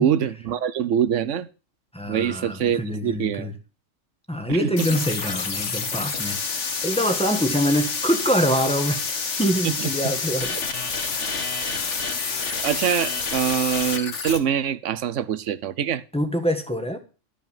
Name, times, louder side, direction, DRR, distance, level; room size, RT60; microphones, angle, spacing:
voice 1, 0.0-1.5 2.0-3.5 4.5-5.0 9.6-9.9 11.3-11.5 12.6-16.0, right 9 dB, 75° right, 1.1 m, -24 dB
voice 2, 1.9-3.5 4.3-6.4 6.8-10.5 10.9-11.2 16.1-17.0, equal, 5° left, 1.6 m, -25 dB
sound 1, 4.8-14.4, left 5 dB, 65° left, 1.7 m, -28 dB
13.0 x 5.4 x 7.3 m
omnidirectional pair, 1.3 m